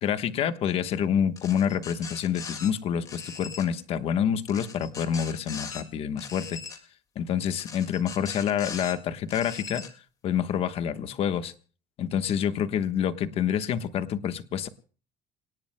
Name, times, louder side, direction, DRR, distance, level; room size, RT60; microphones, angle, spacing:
voice 1, 0.0-6.6 7.1-9.8 10.2-11.5 12.0-14.7, left 8 dB, 40° left, 11 dB, 1.2 m, -27 dB
sound 1, 1.4-2.7 3.1-3.7 4.5-5.8 6.2-6.8 7.6-8.9 9.3-9.9, left 5 dB, 25° left, 2.0 m, -40 dB
27.0 x 18.5 x 2.2 m, 0.40 s
cardioid pair, 165°, 15 cm